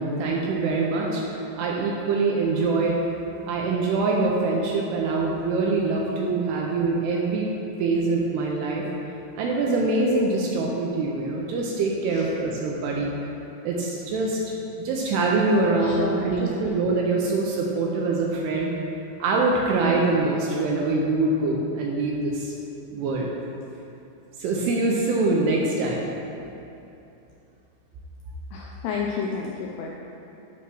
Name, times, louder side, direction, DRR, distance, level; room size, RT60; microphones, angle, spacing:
voice 1, 0.0-3.0 3.5-7.5 7.8-8.8 9.4-13.1 13.6-14.4 14.8-18.7 19.2-22.5 22.9-23.3 24.4-26.0, right 3 dB, 80° right, -2 dB, 2.5 m, -24 dB
voice 2, 15.8-16.6 28.5-29.9, left 5 dB, 85° left, -2 dB, 2.3 m, -31 dB
9.1 x 3.1 x 6.1 m, 2.9 s
omnidirectional pair, 5.2 m